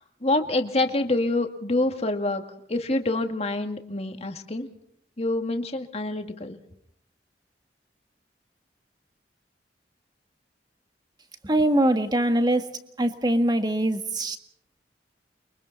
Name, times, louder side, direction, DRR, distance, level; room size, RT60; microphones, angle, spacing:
voice 1, 0.0-2.4 2.7-4.7 5.2-6.6, left 2 dB, 35° left, 5 dB, 2.1 m, -26 dB
voice 2, 11.4-12.7 13.0-14.4, right 1 dB, 25° right, 7 dB, 1.7 m, -22 dB
29.5 x 24.0 x 4.1 m, 0.68 s
head